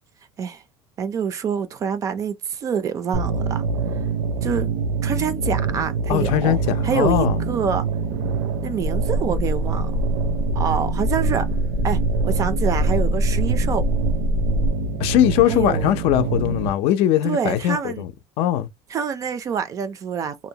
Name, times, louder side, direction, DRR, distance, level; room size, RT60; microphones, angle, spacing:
voice 1, 1.0-3.6 4.4-4.7 5.0-6.6 6.8-7.9 8.6-9.9 10.5-11.5 11.8-13.8 15.5-15.9 17.2-18.0 18.9-20.4, right 7 dB, 30° right, 0.4 m, -26 dB
sound 1, 3.1-16.7, right 4 dB, 80° right, 0.6 m, -25 dB
voice 2, 6.1-7.4 15.0-18.1 18.4-18.7, left 12 dB, 65° left, 0.4 m, -20 dB
sound 2, 8.8-14.7, left 1 dB, 20° left, 0.6 m, -24 dB
2.6 x 2.1 x 2.7 m
cardioid pair, 160°, 11 cm